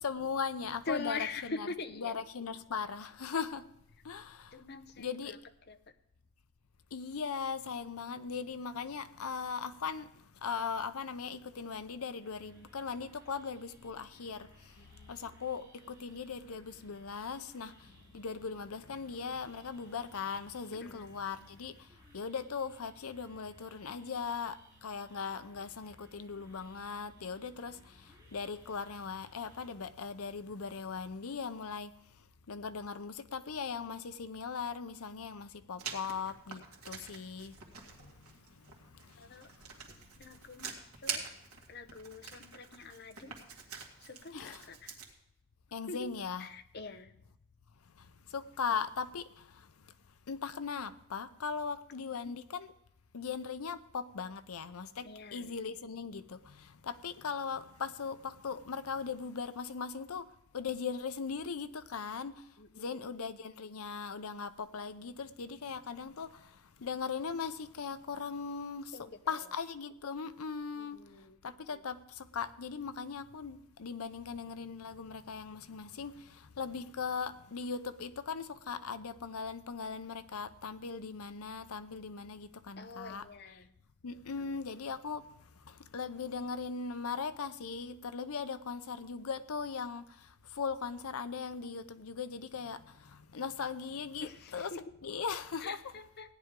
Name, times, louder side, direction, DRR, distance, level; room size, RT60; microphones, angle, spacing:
voice 1, 0.0-1.7 2.0-3.6 4.0-4.6 5.0-5.4 6.9-14.7 15.1-21.8 22.1-31.9 32.5-37.6 38.0-38.1 39.0-39.2 44.3-44.7 45.7-46.5 48.0-49.7 50.3-52.7 53.1-60.3 60.5-62.3 62.8-69.0 69.3-71.0 71.4-83.2 84.0-85.3 85.7-94.7 95.0-95.8, left 5 dB, 85° left, 0.6 m, -39 dB
voice 2, 0.9-2.2 4.5-5.4 5.7-5.8 14.8-15.2 20.7-21.2 39.2-39.5 40.2-41.3 41.7-43.4 44.0-44.9 45.9-47.1 51.9-52.3 55.0-55.6 62.6-63.1 68.9-69.4 70.8-71.4 82.8-83.7 84.4-84.5 94.2-94.8 95.6-96.3, left 4 dB, 50° left, 0.8 m, -44 dB
sound 1, 12.2-29.7, equal, 15° right, 5.6 m, -62 dB
Writing, 35.8-45.1, right 6 dB, 85° right, 2.1 m, -46 dB
16.5 x 10.0 x 3.7 m
head